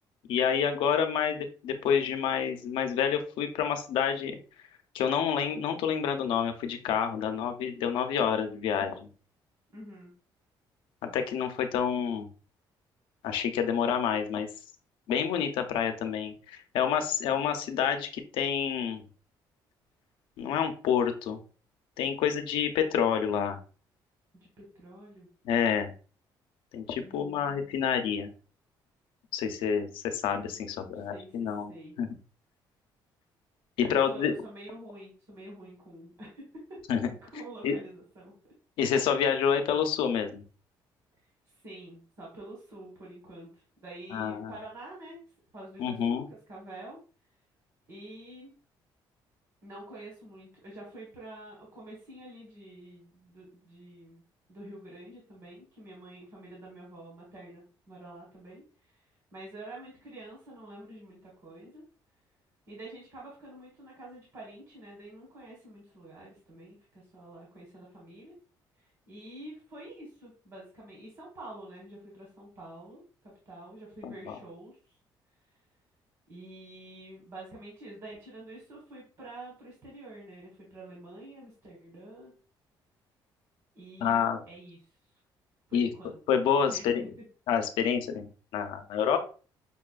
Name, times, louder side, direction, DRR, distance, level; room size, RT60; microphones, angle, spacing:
voice 1, 0.3-4.4 4.9-9.1 11.1-12.3 13.2-14.5 15.1-19.0 20.4-21.4 22.0-23.6 25.4-25.9 26.7-28.3 29.3-31.7 32.0-32.1 33.8-34.3 36.9-37.1 37.6-37.7 38.8-40.4 44.1-44.5 45.8-46.3 74.0-74.3 84.0-84.4 85.7-85.9 86.3-87.0 87.5-88.3 88.5-89.2, left 7 dB, 85° left, 7 dB, 0.6 m, -28 dB
voice 2, 9.7-10.1 24.3-25.3 27.0-27.9 30.5-32.0 33.8-36.8 37.3-38.3 41.6-45.2 45.5-46.2 46.5-47.0 47.9-48.5 49.6-54.2 54.5-59.1 59.3-61.8 62.7-68.3 68.8-73.0 73.4-74.8 76.3-82.3 83.7-84.8 85.7-86.2 86.7-87.2 89.0-89.2, right 1 dB, 45° right, -3 dB, 1.4 m, -47 dB
5.4 x 2.3 x 2.4 m, 0.37 s
cardioid pair, 145°, 8 cm